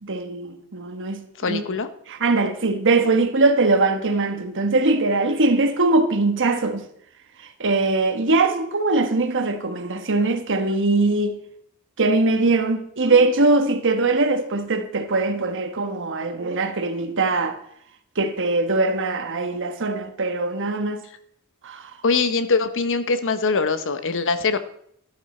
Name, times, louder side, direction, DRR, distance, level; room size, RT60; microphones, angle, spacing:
voice 1, 0.0-1.6 2.1-6.8 7.6-11.4 12.0-17.6 18.2-21.0 21.6-21.9, right 3 dB, 60° right, 1.3 m, -21 dB
voice 2, 1.4-1.9 22.0-24.6, left 4 dB, 60° left, 0.9 m, -22 dB
12.5 x 12.0 x 4.4 m
head